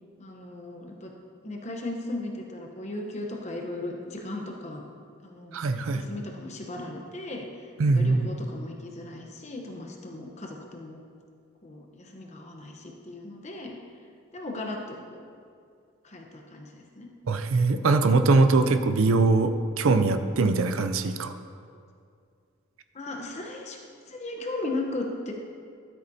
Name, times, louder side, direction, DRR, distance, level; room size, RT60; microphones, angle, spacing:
voice 1, 0.2-1.1 1.4-4.8 5.2-5.6 5.9-7.4 7.9-11.0 11.6-13.8 14.3-15.2 16.0-17.1 22.9-23.8 24.1-25.3, left 2 dB, 30° left, 1 dB, 0.9 m, -36 dB
voice 2, 5.5-6.0 7.8-8.3 17.3-19.5 19.8-21.3, right 3 dB, 70° right, 9 dB, 0.5 m, -22 dB
12.5 x 8.4 x 2.8 m, 2.3 s
head